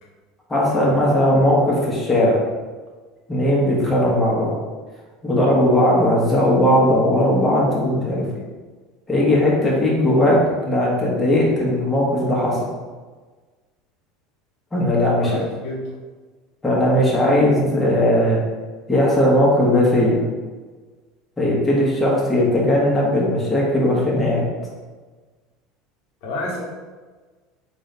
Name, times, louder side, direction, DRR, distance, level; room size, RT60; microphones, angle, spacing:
voice 1, 0.5-2.4 3.3-4.5 5.2-8.3 9.1-10.4 10.6-12.7 14.7-15.3 16.6-18.4 18.9-20.2 21.4-24.4, left 1 dB, 20° left, -4 dB, 1.3 m, -18 dB
voice 2, 15.2-15.8 26.2-26.6, left 2 dB, 70° left, -3 dB, 1.2 m, -29 dB
3.7 x 2.7 x 3.3 m, 1.4 s
hypercardioid pair, 90°, 0 cm